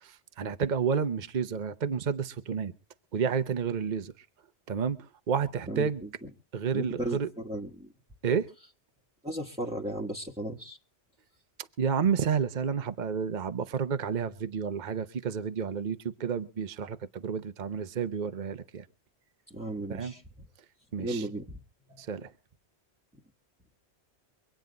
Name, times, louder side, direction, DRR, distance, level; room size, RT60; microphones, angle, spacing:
voice 1, 0.0-2.7 3.1-4.1 4.7-5.0 5.3-6.0 6.5-7.3 8.2-8.5 11.8-18.9 19.9-20.1 20.9-21.2 22.0-22.3, right 6 dB, 45° right, 10 dB, 0.9 m, -30 dB
voice 2, 5.7-6.1 6.7-7.2 7.4-7.9 9.2-10.8 19.5-20.2 21.0-21.6, right 1 dB, 5° right, -2 dB, 1.3 m, -35 dB
24.5 x 9.0 x 4.0 m, 0.34 s
omnidirectional pair, 1.2 m